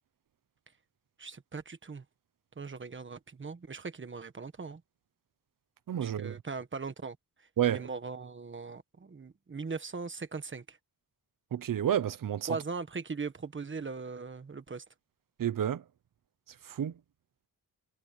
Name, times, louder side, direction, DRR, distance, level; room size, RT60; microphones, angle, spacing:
voice 1, 1.2-2.0 2.6-4.8 6.0-10.8 12.5-14.8, right 4 dB, 30° right, 1.5 m, -40 dB
voice 2, 5.9-6.3 7.6-7.8 11.5-12.5 15.4-15.8 16.7-16.9, right 10 dB, 60° right, 1.0 m, -30 dB
wide cardioid pair, 130°, 37 cm